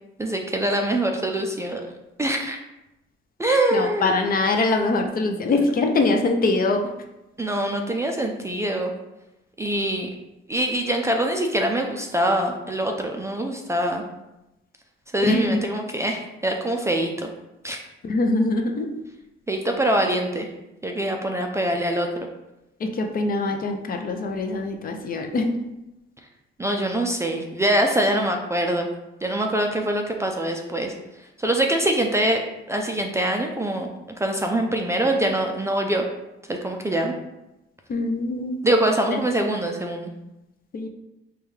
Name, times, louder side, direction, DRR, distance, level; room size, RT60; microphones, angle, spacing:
voice 1, 0.2-1.8 2.2-2.6 3.4-4.2 7.4-8.9 9.6-10.1 10.5-14.0 15.1-17.3 17.6-17.8 19.5-20.5 20.8-22.1 26.6-28.9 29.2-30.9 31.4-32.4 32.7-33.9 34.2-36.0 36.5-37.1 38.6-40.1, right 1 dB, 15° right, 2 dB, 0.3 m, -24 dB
voice 2, 3.5-6.9 15.2-15.6 18.0-18.9 22.8-25.6 37.9-38.7 39.1-39.2 40.7-40.9, left 2 dB, 45° left, 4 dB, 0.5 m, -23 dB
5.1 x 2.3 x 3.1 m, 0.94 s
cardioid pair, 125°, 21 cm